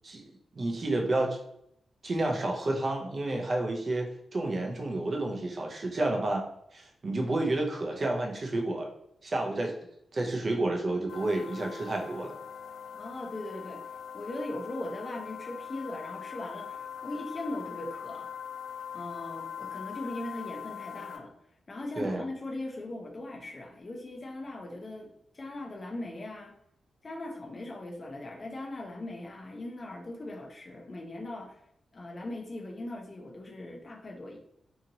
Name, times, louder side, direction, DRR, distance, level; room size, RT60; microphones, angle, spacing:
voice 1, 0.6-1.4 2.0-6.5 6.7-8.9 9.2-9.7 10.1-12.3 22.0-22.2, right 2 dB, 35° right, 1 dB, 0.5 m, -30 dB
sound 1, 11.1-21.2, left 8 dB, 85° left, 0.4 m, -42 dB
voice 2, 12.9-13.8 14.1-18.3 18.9-21.3 21.7-25.1 25.3-26.5 27.0-31.6 31.9-34.4, left 1 dB, 30° left, 1 dB, 0.5 m, -39 dB
2.8 x 2.7 x 2.7 m, 0.73 s
wide cardioid pair, 165°, 0 cm